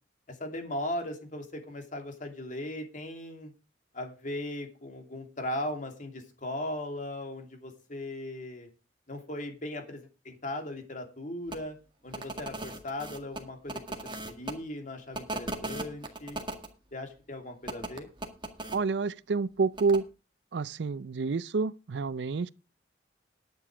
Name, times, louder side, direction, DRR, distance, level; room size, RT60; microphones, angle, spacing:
voice 1, 0.3-3.5 3.9-8.7 9.1-11.8 12.0-16.4 16.9-18.1, left 1 dB, 45° left, 2.8 m, -38 dB
sound 1, 11.5-11.6 12.1-14.5 15.1-16.7 17.6-18.8 19.8-20.0, right 2 dB, 25° right, 1.8 m, -37 dB
voice 2, 18.7-20.1 20.5-22.5, right 4 dB, 70° right, 0.5 m, -28 dB
10.5 x 8.9 x 4.9 m
head